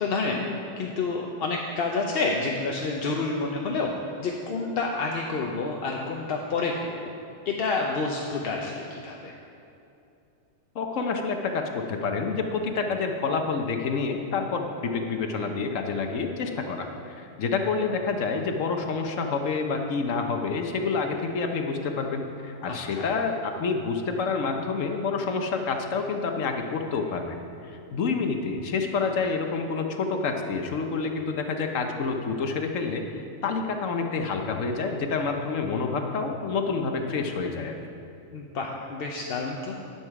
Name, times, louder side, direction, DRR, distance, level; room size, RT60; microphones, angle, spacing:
voice 1, 0.0-3.9 4.2-7.1 7.5-9.3 22.7-23.1 38.3-39.8, left 3 dB, 55° left, 0 dB, 0.8 m, -29 dB
voice 2, 10.7-37.8, left 4 dB, 75° left, 4 dB, 1.2 m, -28 dB
11.0 x 7.2 x 4.7 m, 2.7 s
omnidirectional pair, 1.4 m